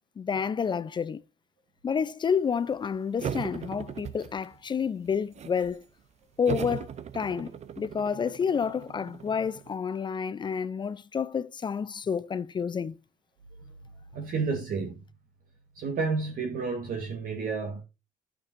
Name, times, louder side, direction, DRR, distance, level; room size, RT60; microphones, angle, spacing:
voice 1, 0.2-1.2 1.8-5.8 6.4-7.5 7.8-13.0, left 6 dB, 25° left, 0.4 m, -29 dB
sound 1, 3.2-4.7 5.1-5.8 6.5-9.7, right 8 dB, 40° right, 0.6 m, -38 dB
voice 2, 14.1-15.0 15.7-17.8, right 4 dB, 55° right, 1.5 m, -31 dB
12.0 x 6.7 x 2.6 m
cardioid pair, 110°, 17 cm